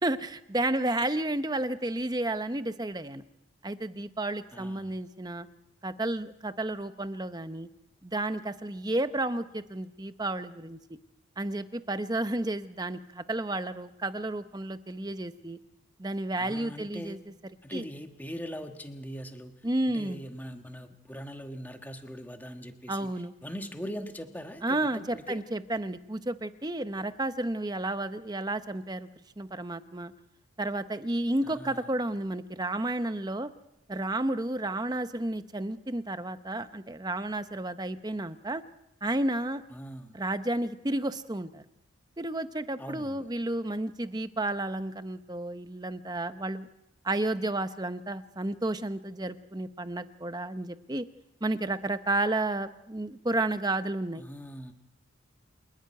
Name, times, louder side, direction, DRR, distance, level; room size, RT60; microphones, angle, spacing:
voice 1, 0.0-3.2 3.6-5.5 5.8-7.7 8.0-10.8 11.4-15.6 16.0-17.2 17.7-17.8 19.6-20.2 22.9-23.3 24.6-29.1 29.4-30.1 30.6-33.5 33.9-38.6 39.0-39.6 40.1-41.6 42.2-46.7 47.0-51.0 51.4-54.2, right 2 dB, 20° right, 11 dB, 0.8 m, -31 dB
voice 2, 4.5-5.0 16.4-17.2 17.6-19.6 19.9-23.1 23.4-25.4 31.4-31.9 39.7-40.1 42.8-43.3 54.2-54.7, equal, 10° left, 5 dB, 1.4 m, -41 dB
29.0 x 10.5 x 9.4 m, 0.88 s
head